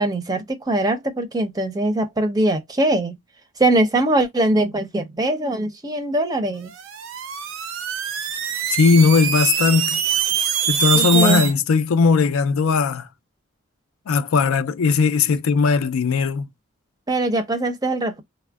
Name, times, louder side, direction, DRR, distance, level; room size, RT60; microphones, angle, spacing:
voice 1, 0.0-3.1 3.6-6.7 11.0-11.4 17.1-18.2, right 1 dB, 20° right, 0.5 m, -21 dB
sound 1, 6.7-11.5, right 9 dB, 70° right, 0.5 m, -24 dB
voice 2, 8.7-10.0 10.7-13.1 14.1-16.5, left 4 dB, 80° left, 0.4 m, -18 dB
3.4 x 2.1 x 2.3 m
head